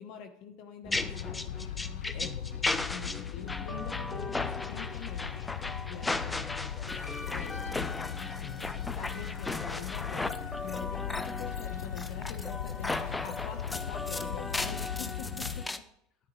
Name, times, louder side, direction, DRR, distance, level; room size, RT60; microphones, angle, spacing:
voice 1, 0.0-1.4 2.1-5.3 5.9-6.7 7.3-7.8 9.0-15.8, left 7 dB, 65° left, 6 dB, 1.2 m, -45 dB
sound 1, 0.8-15.8, left 2 dB, 15° left, 0.6 m, -36 dB
sound 2, 0.9-15.7, left 10 dB, 85° left, 0.4 m, -39 dB
voice 2, 6.0-8.9, left 5 dB, 45° left, 6 dB, 1.1 m, -50 dB
10.0 x 9.1 x 3.3 m, 0.73 s
hypercardioid pair, 90°, 0 cm